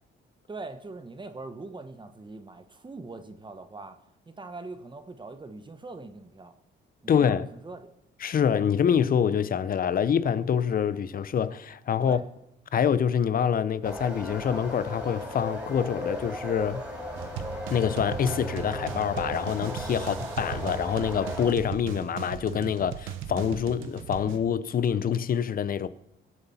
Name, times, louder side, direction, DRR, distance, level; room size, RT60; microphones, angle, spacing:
voice 1, 0.5-4.0 4.3-6.5 7.2-7.9 12.0-12.3 20.0-20.2, right 3 dB, 25° right, 1.1 m, -42 dB
voice 2, 7.1-7.4 8.2-12.2 12.7-16.8 17.7-25.9, left 8 dB, 45° left, 0.6 m, -26 dB
sound 1, 13.8-21.5, left 1 dB, 5° right, 4.5 m, -36 dB
sound 2, 17.1-24.4, right 10 dB, 85° right, 0.9 m, -38 dB
22.5 x 8.0 x 4.2 m
cardioid pair, 90°, 20 cm